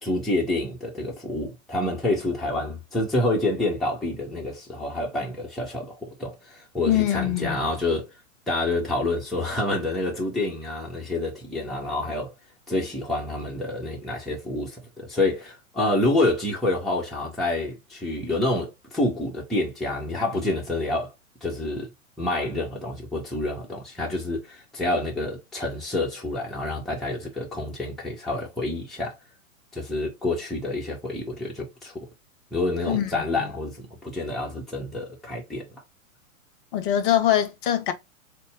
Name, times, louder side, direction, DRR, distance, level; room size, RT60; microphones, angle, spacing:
voice 1, 0.0-8.1 8.5-12.3 12.7-21.1 21.4-21.9 22.2-29.1 29.7-32.1 32.5-35.6, left 2 dB, ahead, 0.9 m, -28 dB
voice 2, 6.9-7.6 32.9-33.5 36.7-37.9, left 11 dB, 40° left, 0.6 m, -23 dB
4.1 x 2.1 x 3.5 m
hypercardioid pair, 115°, 42 cm